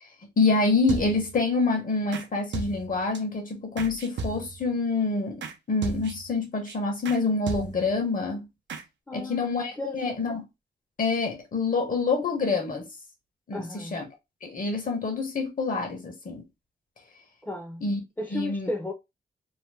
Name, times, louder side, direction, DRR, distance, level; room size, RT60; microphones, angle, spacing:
voice 1, 0.4-8.5 9.1-10.4 11.0-12.8 13.5-14.1 14.4-16.4 17.8-18.0 18.3-18.7, left 3 dB, 50° left, 1.1 m, -26 dB
sound 1, 0.9-1.4 2.1-2.3 2.5-3.2 3.8-4.7 5.4-5.6 5.8-6.3 6.7-6.8 7.0-7.2 7.5-8.0 8.7-8.8, right 4 dB, 85° right, 0.6 m, -35 dB
voice 2, 9.1-10.2 13.5-14.0 17.4-17.8 18.2-18.9, left 1 dB, 10° left, 0.7 m, -34 dB
2.9 x 2.1 x 3.3 m
wide cardioid pair, 105°, 18 cm